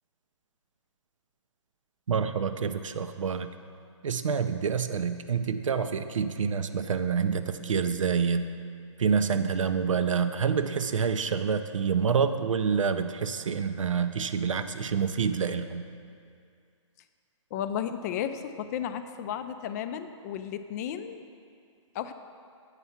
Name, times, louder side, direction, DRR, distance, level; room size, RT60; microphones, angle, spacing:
voice 1, 2.1-3.5 4.0-8.4 9.0-15.8, right 6 dB, 90° right, 10 dB, 0.5 m, -27 dB
voice 2, 17.5-21.2 21.9-22.1, left 9 dB, 35° left, 10 dB, 0.3 m, -33 dB
8.3 x 4.5 x 5.7 m, 2.3 s
hypercardioid pair, 135°, 16 cm